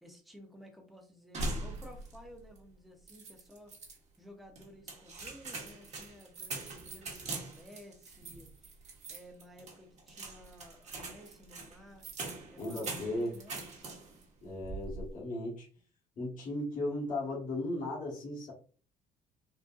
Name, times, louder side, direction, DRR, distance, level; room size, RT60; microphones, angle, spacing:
voice 1, 0.0-3.7 4.2-8.8 9.1-12.1 12.5-13.6, equal, ahead, 2 dB, 0.8 m, -54 dB
sound 1, 1.3-2.3 2.6-2.7 3.1-4.0 4.6-14.2 14.6-15.1, right 2 dB, 40° right, 1.0 m, -42 dB
voice 2, 12.6-13.4 14.4-15.7 16.2-18.5, left 1 dB, 50° left, -5 dB, 1.4 m, -36 dB
3.8 x 2.0 x 2.5 m, 0.40 s
cardioid pair, 110°, 17 cm